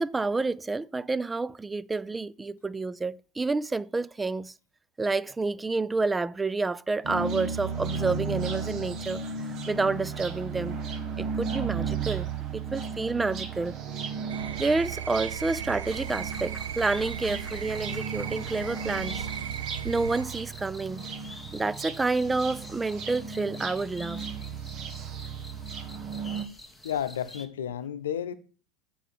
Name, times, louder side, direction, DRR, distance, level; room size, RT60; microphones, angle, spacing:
voice 1, 0.0-4.5 5.0-9.2 9.7-10.8 11.2-13.8 14.6-19.3 19.8-21.0 21.5-24.2, right 3 dB, 15° right, 0.4 m, -29 dB
sound 1, 7.0-26.4, right 5 dB, 50° right, 1.6 m, -35 dB
sound 2, 14.3-20.3, right 8 dB, 90° right, 0.4 m, -38 dB
sound 3, 15.9-27.5, left 1 dB, 5° left, 1.3 m, -48 dB
voice 2, 26.8-28.3, left 9 dB, 85° left, 0.7 m, -31 dB
7.4 x 4.6 x 7.1 m
hypercardioid pair, 90°, 0 cm